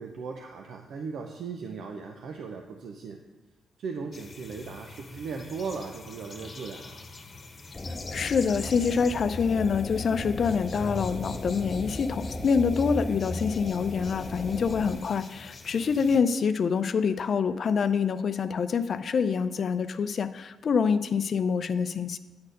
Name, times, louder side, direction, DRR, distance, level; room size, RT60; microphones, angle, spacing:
voice 1, 0.0-3.2 3.8-7.1, right 5 dB, 75° right, 3 dB, 0.6 m, -37 dB
sound 1, 4.1-16.2, left 3 dB, 40° left, 1.1 m, -45 dB
sound 2, 7.7-14.9, left 1 dB, 25° left, 0.7 m, -36 dB
voice 2, 8.1-22.2, left 6 dB, 55° left, 12 dB, 0.4 m, -26 dB
9.5 x 4.2 x 6.5 m, 1.1 s
cardioid pair, 85°, 0 cm